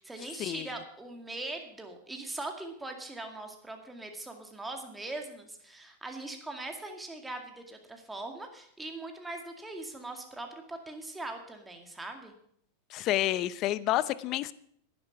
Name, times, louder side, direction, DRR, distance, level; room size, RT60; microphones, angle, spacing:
voice 1, 0.0-12.3, right 2 dB, 10° right, 4 dB, 2.1 m, -41 dB
voice 2, 12.9-14.5, left 14 dB, 45° left, 17 dB, 0.6 m, -29 dB
10.5 x 10.5 x 5.9 m, 0.68 s
hypercardioid pair, 125°, 0 cm